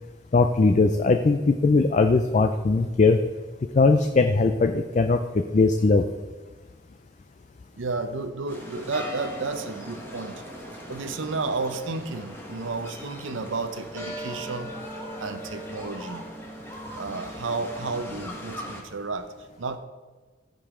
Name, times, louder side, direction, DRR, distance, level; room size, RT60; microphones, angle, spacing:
voice 1, 0.3-3.2 3.7-6.0, left 3 dB, 35° left, 6 dB, 0.4 m, -20 dB
voice 2, 7.8-10.4 10.9-14.8 15.2-16.2 16.9-19.3 19.6-19.8, right 3 dB, 80° right, 10 dB, 0.7 m, -32 dB
sound 1, 8.5-18.8, equal, 10° left, 1.2 m, -39 dB
14.5 x 5.3 x 3.7 m, 1.3 s
head